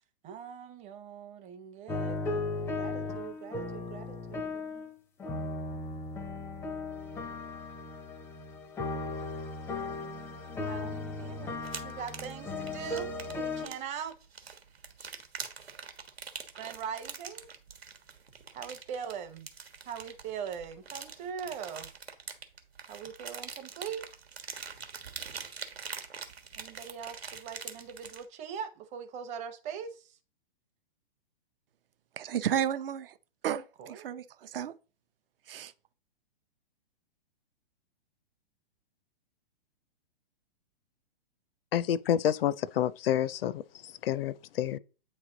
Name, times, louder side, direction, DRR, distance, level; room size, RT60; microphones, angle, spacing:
voice 1, 0.2-4.9 10.6-14.1 16.5-17.5 17.8-17.9 18.5-19.5 19.8-21.9 22.9-24.0 26.6-30.2 33.8-34.1, right 7 dB, 25° right, 0.7 m, -41 dB
sound 1, 1.9-4.9 5.2-13.7, left 3 dB, 10° left, 0.4 m, -36 dB
sound 2, 11.6-28.3, right 6 dB, 85° right, 1.2 m, -44 dB
voice 2, 32.2-33.1 33.4-34.7 35.5-35.7, right 9 dB, 65° right, 0.6 m, -32 dB
voice 3, 41.7-43.6 44.0-44.8, left 10 dB, 70° left, 0.5 m, -28 dB
8.6 x 3.2 x 3.8 m
hypercardioid pair, 130°, 30 cm